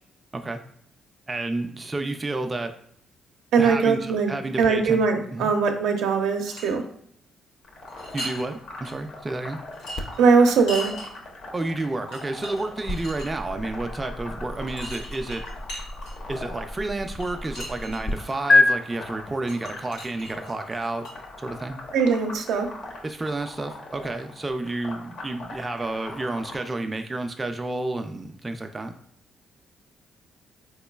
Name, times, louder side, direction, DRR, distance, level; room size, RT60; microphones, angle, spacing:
voice 1, 1.3-2.7 3.5-5.0 5.3-5.5 8.1-9.6 11.5-15.4 16.3-21.1 21.4-21.8 23.0-28.9, right 2 dB, 20° right, 5 dB, 0.3 m, -30 dB
voice 2, 3.5-4.3 4.6-6.8 10.2-10.9 21.9-22.7, right 5 dB, 85° right, 4 dB, 0.5 m, -20 dB
sound 1, 6.2-6.7 7.9-8.4 8.8-8.9 9.7-11.1 11.8-11.9 12.1-13.3 14.7-16.3 17.2-18.3 19.5-21.1, equal, 90° left, 1.3 m, -38 dB
sound 2, 7.6-26.6, left 2 dB, 65° left, 0.8 m, -41 dB
sound 3, 9.9-18.1 18.5-18.6, left 2 dB, 45° left, 0.5 m, -28 dB
3.8 x 3.0 x 2.3 m, 0.66 s
cardioid pair, 90°, 0 cm